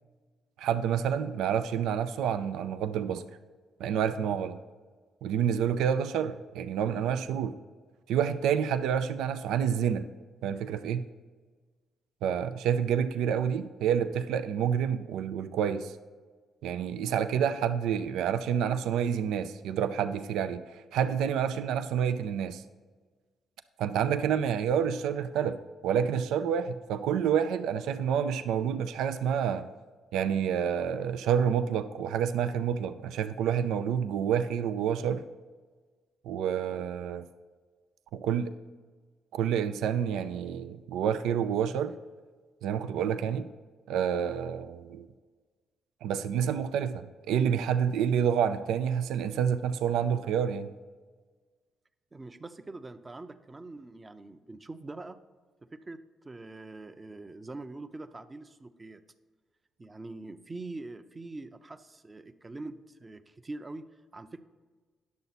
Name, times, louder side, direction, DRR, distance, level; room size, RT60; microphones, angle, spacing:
voice 1, 0.6-3.2 3.8-4.6 5.2-7.5 8.1-10.0 10.4-11.0 12.2-16.0 16.6-22.6 23.8-25.6 25.8-29.7 30.1-35.2 36.2-37.2 38.1-38.5 39.3-42.0 42.6-43.5 43.9-45.1 46.0-50.7, right 8 dB, 85° right, 10 dB, 0.4 m, -28 dB
voice 2, 52.1-55.2 55.7-59.0 59.8-64.4, right 2 dB, 25° right, 9 dB, 0.6 m, -43 dB
10.5 x 6.9 x 4.2 m, 1.4 s
cardioid pair, 90°, 0 cm